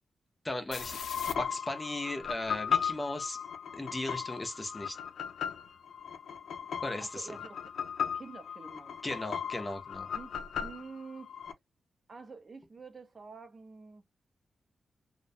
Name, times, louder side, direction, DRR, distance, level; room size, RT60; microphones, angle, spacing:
voice 1, 0.4-1.0 1.4-3.4 3.7-5.0 6.8-7.3 9.0-10.1, left 2 dB, 15° left, 0.4 m, -36 dB
sound 1, 0.7-11.5, left 7 dB, 85° left, 0.5 m, -37 dB
voice 2, 7.0-7.6 8.1-9.3 10.0-11.3 12.1-14.0, right 4 dB, 35° right, 0.5 m, -48 dB
2.4 x 2.1 x 2.5 m
wide cardioid pair, 170°, 0 cm